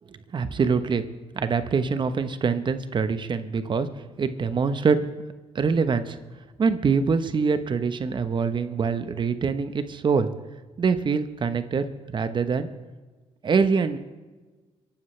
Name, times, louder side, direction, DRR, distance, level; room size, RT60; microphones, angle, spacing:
voice 1, 0.1-1.0 1.3-3.9 4.2-5.0 5.5-6.2 6.6-10.3 10.8-11.8 12.1-12.7 13.4-14.0, right 5 dB, 45° right, 11 dB, 1.1 m, -24 dB
24.5 x 12.0 x 3.3 m, 1.3 s
cardioid pair, 80°, 11 cm